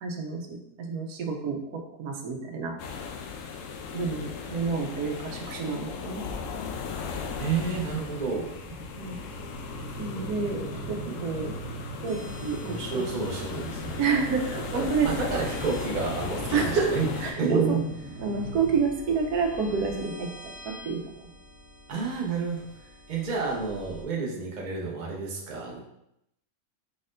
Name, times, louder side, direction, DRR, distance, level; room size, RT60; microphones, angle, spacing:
voice 1, 0.0-2.8 3.9-6.2 9.0-9.2 10.0-11.5 12.0-13.1 14.0-15.1 16.5-16.9 17.2-17.8 18.2-20.3 20.6-21.3, right 5 dB, 85° right, 2 dB, 1.2 m, -29 dB
sound 1, 2.8-17.3, left 6 dB, 70° left, 0.9 m, -37 dB
voice 2, 7.4-8.5 10.7-11.2 12.6-14.0 14.7-17.1 17.4-17.8 21.9-22.7 23.1-25.8, right 5 dB, 35° right, -2 dB, 0.8 m, -30 dB
sound 2, 7.6-18.8, right 4 dB, 65° right, 1.3 m, -41 dB
sound 3, 12.0-24.0, left 1 dB, 35° left, 1.7 m, -46 dB
5.1 x 4.1 x 2.5 m, 0.82 s
omnidirectional pair, 1.6 m